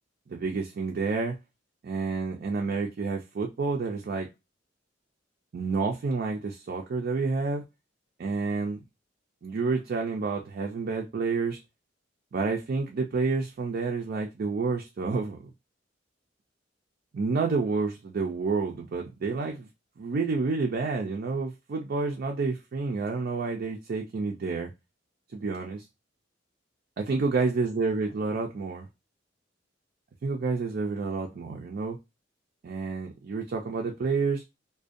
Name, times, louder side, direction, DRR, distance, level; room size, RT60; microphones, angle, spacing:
voice 1, 0.3-1.4 1.8-4.3 5.5-7.6 8.2-8.8 9.4-11.6 12.3-15.5 17.1-19.7 20.0-24.7 25.3-25.8 27.0-28.8 30.2-32.0 32.6-34.4, right 4 dB, 50° right, 0.4 m, -29 dB
2.4 x 2.1 x 2.5 m
head